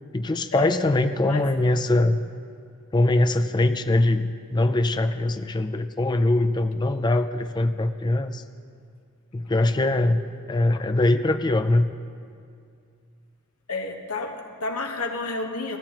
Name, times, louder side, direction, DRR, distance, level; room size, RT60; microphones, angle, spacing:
voice 1, 0.1-2.2 2.9-8.4 9.3-10.2 10.5-11.9, left 2 dB, 20° left, 8 dB, 0.4 m, -22 dB
voice 2, 13.7-15.8, left 3 dB, 80° left, 3 dB, 1.2 m, -30 dB
16.0 x 13.5 x 2.9 m, 2.3 s
head